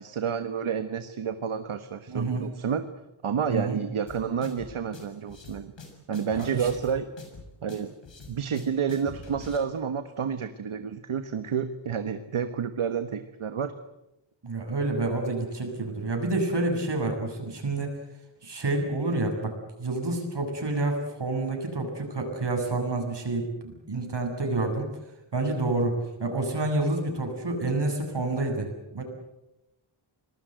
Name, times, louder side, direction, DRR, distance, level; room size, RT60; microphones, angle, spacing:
voice 1, 0.0-2.9 3.2-5.7 6.1-7.1 7.6-7.9 8.3-13.7, right 7 dB, 85° right, 10 dB, 1.4 m, -30 dB
voice 2, 2.1-2.4 3.5-3.8 6.3-6.5 14.4-18.0 18.4-19.5 19.8-24.9 25.3-29.0, right 2 dB, 55° right, 3 dB, 7.9 m, -28 dB
sound 1, 4.1-9.6, left 3 dB, 65° left, 6.9 m, -45 dB
26.0 x 20.5 x 9.1 m, 0.92 s
wide cardioid pair, 85°, 48 cm